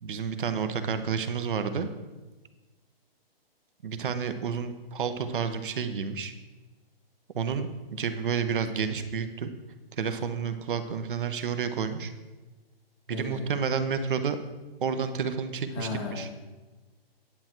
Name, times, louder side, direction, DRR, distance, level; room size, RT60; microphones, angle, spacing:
voice 1, 0.0-1.9 3.8-6.3 7.3-9.5 9.9-12.1 13.1-14.4 14.8-16.3, right 6 dB, 60° right, 9 dB, 1.1 m, -30 dB
voice 2, 13.1-13.5 15.7-16.5, left 4 dB, 15° left, 2 dB, 0.6 m, -36 dB
10.5 x 7.6 x 4.5 m, 1.2 s
hypercardioid pair, 165°, 30 cm